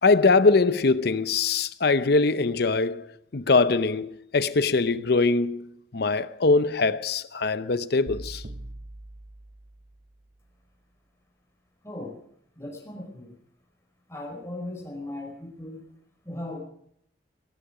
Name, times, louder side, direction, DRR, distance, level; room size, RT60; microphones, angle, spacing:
voice 1, 0.0-3.1 3.3-8.4, left 3 dB, 65° left, 0.8 m, -22 dB
sound 1, 8.1-10.2, right 1 dB, 50° right, 0.8 m, -42 dB
voice 2, 11.8-12.2 12.5-13.3 14.1-15.8 16.2-16.6, left 1 dB, 15° left, 4.9 m, -37 dB
17.0 x 16.0 x 5.0 m
head